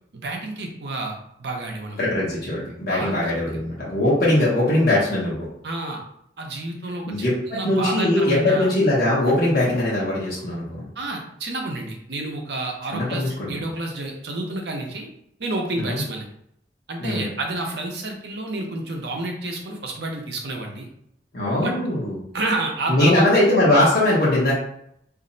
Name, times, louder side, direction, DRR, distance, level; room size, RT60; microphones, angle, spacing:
voice 1, 0.1-2.0 2.9-3.6 5.6-6.0 6.4-7.3 7.5-8.7 11.0-15.1 15.4-16.3 16.9-20.9 21.5-21.8 22.3-23.3, right 2 dB, 70° right, 2 dB, 0.6 m, -29 dB
voice 2, 2.0-5.5 7.1-10.9 12.9-13.6 15.7-16.0 17.0-17.2 21.3-22.2 22.9-24.5, left 1 dB, 55° left, -7 dB, 0.9 m, -21 dB
2.5 x 2.0 x 3.8 m, 0.72 s
head